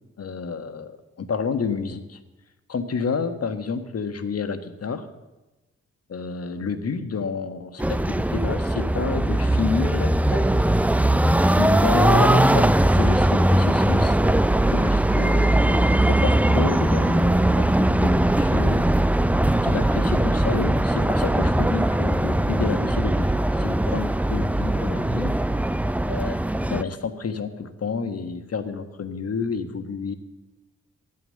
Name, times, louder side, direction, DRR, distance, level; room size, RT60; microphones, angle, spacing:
voice 1, 0.2-2.2 2.7-5.1 6.1-10.5 11.5-14.2 14.7-18.9 19.6-25.3 26.1-30.2, left 5 dB, 50° left, 9 dB, 1.5 m, -30 dB
sound 1, 7.8-26.8, right 1 dB, 5° right, 0.5 m, -20 dB
12.5 x 9.6 x 6.6 m, 1.1 s
supercardioid pair, 45°, 31 cm